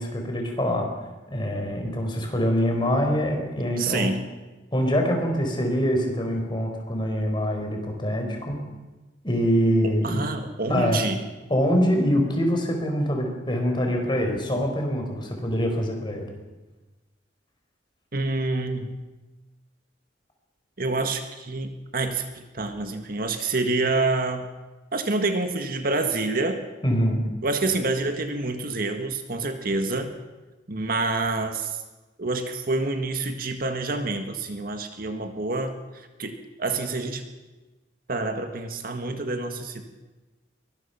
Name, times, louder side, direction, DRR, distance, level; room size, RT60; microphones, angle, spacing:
voice 1, 0.0-4.1 4.7-8.6 9.2-10.2 10.7-11.0 11.5-16.3 26.8-27.2, equal, 25° left, 2 dB, 4.5 m, -24 dB
voice 2, 3.8-4.3 10.0-11.2 18.1-18.9 20.8-24.5 24.9-26.7 27.4-30.1 30.7-31.8 32.2-37.2 38.1-39.8, right 3 dB, 50° right, 6 dB, 1.8 m, -27 dB
23.0 x 20.0 x 5.8 m, 1.2 s
head